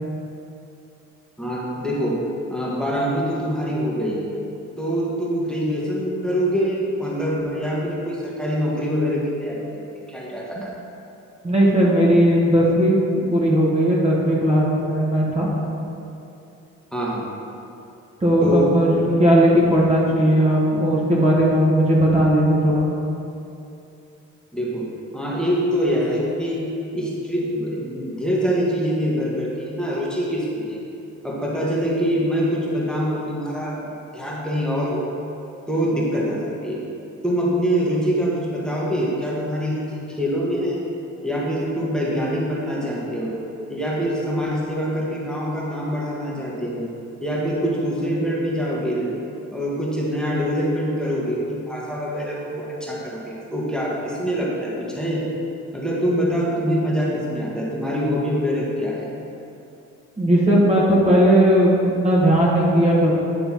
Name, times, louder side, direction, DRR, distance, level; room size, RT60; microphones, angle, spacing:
voice 1, 1.4-2.2 2.5-4.3 4.8-10.7 16.9-17.3 18.4-18.7 19.0-19.1 24.5-24.8 25.1-30.8 31.2-35.1 35.7-36.8 37.2-40.8 41.2-43.4 43.7-46.8 47.2-49.1 49.5-55.2 55.7-59.1, equal, ahead, -6 dB, 1.5 m, -24 dB
voice 2, 11.4-12.9 13.3-15.5 18.2-22.9 56.1-56.2 60.2-63.1, equal, 20° right, -5 dB, 1.4 m, -17 dB
9.7 x 3.3 x 5.7 m, 2.8 s
cardioid pair, 90°, 30 cm